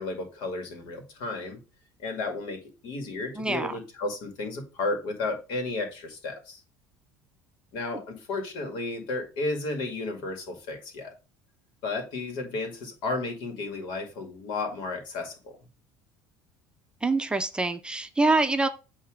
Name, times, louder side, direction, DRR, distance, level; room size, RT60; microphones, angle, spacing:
voice 1, 0.0-1.6 2.0-6.6 7.7-11.1 11.8-15.6, left 3 dB, 75° left, 2.1 m, -33 dB
voice 2, 3.3-3.8 7.9-8.0 17.0-18.7, right 3 dB, 10° right, 0.6 m, -25 dB
8.2 x 2.9 x 5.0 m
cardioid pair, 115°, 8 cm